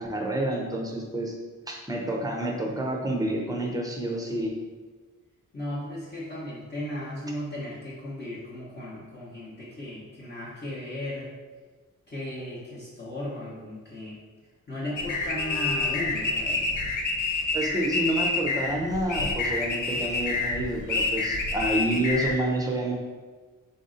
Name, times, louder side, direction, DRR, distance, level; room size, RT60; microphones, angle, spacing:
voice 1, 0.0-1.4 1.7-4.6 17.5-22.9, right 1 dB, 10° right, 0 dB, 0.5 m, -28 dB
voice 2, 5.5-11.3 12.1-14.2 14.7-16.7, left 1 dB, 35° left, -10 dB, 0.9 m, -36 dB
sound 1, 15.0-22.4, left 3 dB, 65° left, 0.6 m, -28 dB
3.9 x 2.6 x 3.7 m, 1.4 s
wide cardioid pair, 150°, 33 cm